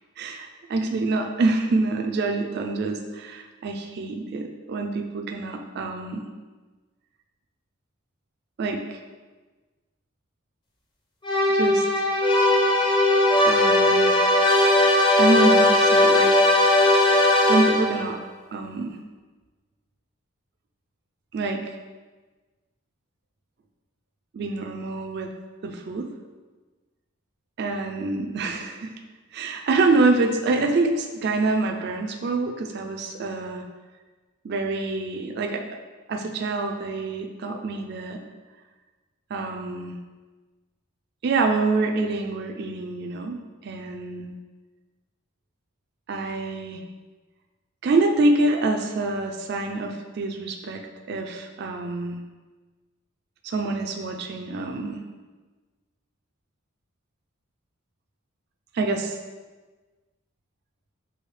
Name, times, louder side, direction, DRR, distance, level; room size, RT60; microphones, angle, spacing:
voice 1, 0.2-6.2 8.6-9.0 11.5-12.1 13.4-14.1 15.2-16.3 16.6-16.8 17.5-18.2 18.5-19.0 21.3-21.7 24.3-25.3 25.6-26.1 27.6-28.9 29.3-33.6 34.4-35.6 36.1-38.2 39.3-40.0 41.2-44.3 46.1-46.8 47.8-50.8 51.1-52.2 53.4-55.0 58.7-59.2, right 3 dB, 50° right, 3 dB, 0.3 m, -26 dB
sound 1, 11.2-18.1, left 1 dB, 20° left, 0.5 m, -18 dB
6.2 x 2.7 x 3.2 m, 1.3 s
head